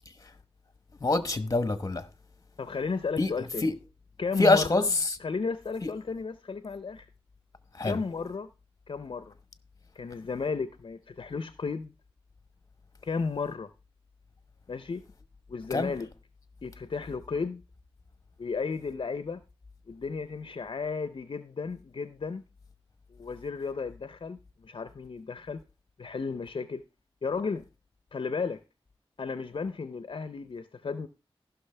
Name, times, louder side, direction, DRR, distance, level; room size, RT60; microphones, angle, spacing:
voice 1, 1.0-2.0 3.2-3.3 3.6-3.7 4.4-4.8 7.8-8.0 15.7-15.9, left 2 dB, 35° left, 1.0 m, -24 dB
voice 2, 2.6-3.7 4.2-4.9 5.2-7.1 7.8-8.5 8.9-9.3 10.0-11.9 13.0-13.7 14.7-15.0 15.5-16.1 16.6-17.6 18.4-19.4 19.9-22.4 23.1-25.6 26.0-26.8 27.2-27.7 28.1-28.6 29.2-31.1, left 4 dB, 60° left, 0.6 m, -34 dB
15.5 x 6.0 x 3.3 m
wide cardioid pair, 85°, 10 cm